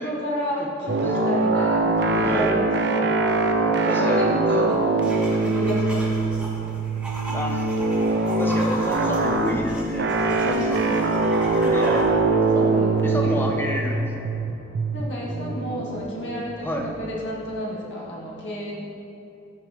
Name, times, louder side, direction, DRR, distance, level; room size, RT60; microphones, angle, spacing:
voice 1, 0.0-3.1 3.8-6.7 10.4-10.9 12.5-13.7 14.9-18.9, equal, 70° left, -5 dB, 1.8 m, -31 dB
sound 1, 0.9-17.4, right 3 dB, 60° right, 0.5 m, -23 dB
voice 2, 3.4-4.7 7.3-7.7 8.4-11.1 11.6-12.7 13.0-14.1 16.6-16.9, equal, 10° left, 1 dB, 0.7 m, -31 dB
sound 2, 5.0-12.0, equal, 5° right, 1.3 m, -36 dB
13.5 x 5.2 x 3.0 m, 2.7 s
head